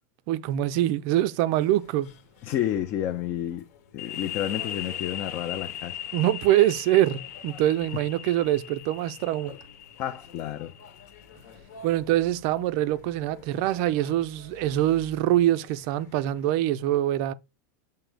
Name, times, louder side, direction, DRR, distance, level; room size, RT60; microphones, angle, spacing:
voice 1, 0.3-2.1 6.1-9.5 11.8-17.3, right 13 dB, 40° right, 0.4 m, -24 dB
sound 1, 1.6-16.5, left 4 dB, 65° left, 1.2 m, -51 dB
voice 2, 2.4-3.7 3.9-6.0 10.0-10.7, left 11 dB, 30° left, 0.4 m, -30 dB
sound 2, 4.0-11.4, left 11 dB, 85° left, 0.9 m, -39 dB
7.4 x 2.7 x 5.0 m
supercardioid pair, 175°, 9 cm